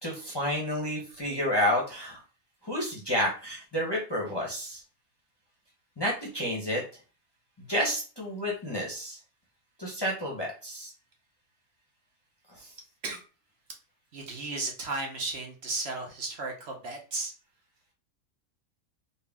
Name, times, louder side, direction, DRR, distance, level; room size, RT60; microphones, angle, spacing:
voice 1, 0.0-2.2 2.6-4.8 6.0-6.8 7.6-9.2 9.8-10.9 12.5-12.7, equal, 20° left, -2 dB, 0.8 m, -30 dB
voice 2, 14.1-17.3, right 3 dB, 60° right, 2 dB, 1.0 m, -34 dB
4.1 x 2.2 x 3.4 m, 0.35 s
omnidirectional pair, 1.3 m